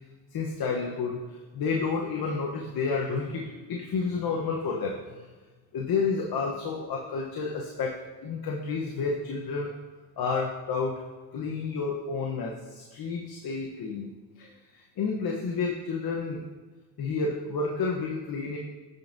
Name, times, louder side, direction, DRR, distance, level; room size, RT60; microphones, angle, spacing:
voice 1, 0.3-5.2 5.7-9.8 10.2-11.0 11.3-14.1 14.4-16.4 17.0-18.6, left 4 dB, 50° left, 0 dB, 1.0 m, -30 dB
13.5 x 5.3 x 2.7 m, 1.3 s
supercardioid pair, 80°, 47 cm